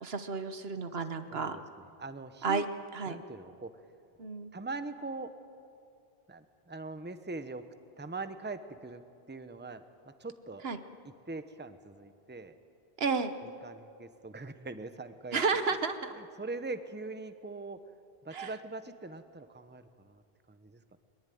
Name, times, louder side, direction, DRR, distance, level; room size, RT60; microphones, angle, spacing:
voice 1, 0.0-1.6 2.4-2.7 2.9-3.2 4.2-4.5 10.6-10.8 13.0-13.4 15.3-16.1 18.3-18.5, right 4 dB, 75° right, 9 dB, 1.4 m, -32 dB
voice 2, 1.3-2.6 3.1-3.7 4.5-5.3 6.3-7.6 8.0-9.0 9.3-10.6 11.3-12.6 13.4-15.4 16.2-17.8 18.2-20.2 20.5-21.0, right 3 dB, 10° right, 10 dB, 0.9 m, -42 dB
22.5 x 21.0 x 9.4 m, 2.4 s
omnidirectional pair, 1.0 m